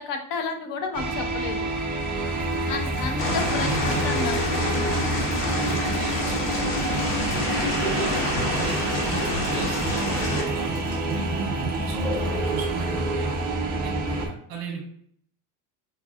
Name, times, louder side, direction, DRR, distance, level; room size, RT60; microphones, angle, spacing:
voice 1, 0.0-1.7 2.7-4.6 5.0-5.1, left 5 dB, 50° left, 5 dB, 0.6 m, -31 dB
sound 1, 0.9-14.3, right 2 dB, 20° right, 0.3 m, -28 dB
sound 2, 2.1-12.5 12.8-12.9, right 1 dB, 20° left, 1.2 m, -37 dB
sound 3, 3.2-10.4, left 3 dB, 70° left, 1.0 m, -28 dB
voice 2, 3.3-4.1 5.4-10.8 11.1-13.3 13.7-14.9, right 5 dB, 60° right, 0 dB, 1.0 m, -35 dB
4.4 x 2.5 x 2.4 m, 0.66 s
cardioid pair, 150°, 45 cm